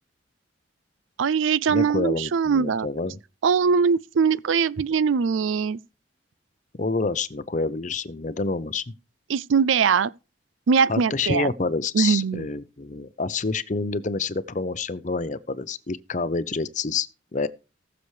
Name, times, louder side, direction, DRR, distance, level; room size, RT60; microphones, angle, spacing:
voice 1, 1.2-2.9 3.4-5.8 9.3-10.1 10.7-11.5 11.9-12.4, right 6 dB, 85° right, 0.4 m, -21 dB
voice 2, 1.7-3.2 6.8-8.8 10.9-17.5, left 4 dB, 40° left, 0.6 m, -28 dB
19.0 x 7.0 x 3.2 m
head